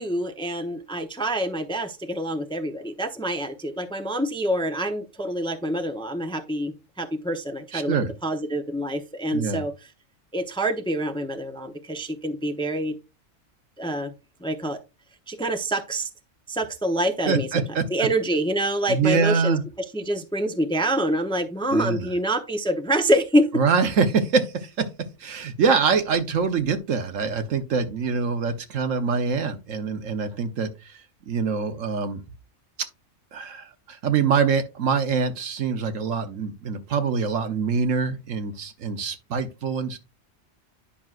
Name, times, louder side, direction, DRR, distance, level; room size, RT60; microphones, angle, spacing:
voice 1, 0.0-8.0 8.2-9.7 10.3-12.9 13.8-14.1 14.4-14.8 15.3-16.1 16.5-17.5 17.9-19.6 19.9-23.5, right 1 dB, 5° left, 0.6 m, -26 dB
voice 2, 7.7-8.1 9.3-9.6 17.3-17.8 18.9-19.6 21.7-22.1 23.5-24.9 25.2-31.0 31.3-32.2 33.3-40.0, right 5 dB, 85° right, 1.4 m, -24 dB
10.0 x 6.0 x 2.5 m
omnidirectional pair, 1.3 m